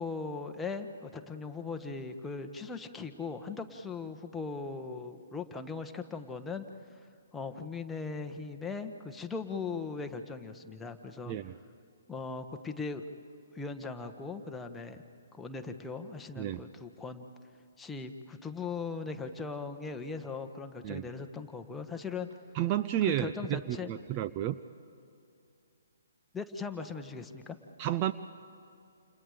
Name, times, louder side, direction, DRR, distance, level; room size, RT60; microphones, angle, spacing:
voice 1, 0.0-6.6 7.3-11.3 12.1-13.0 13.5-15.0 15.3-17.3 17.8-22.3 23.0-23.9 26.3-27.6, left 4 dB, 10° left, 5 dB, 1.3 m, -39 dB
voice 2, 22.5-24.6 27.8-28.1, right 12 dB, 30° right, 11 dB, 0.6 m, -31 dB
29.5 x 28.5 x 5.1 m, 2.5 s
figure-of-eight pair, 130°, 0 cm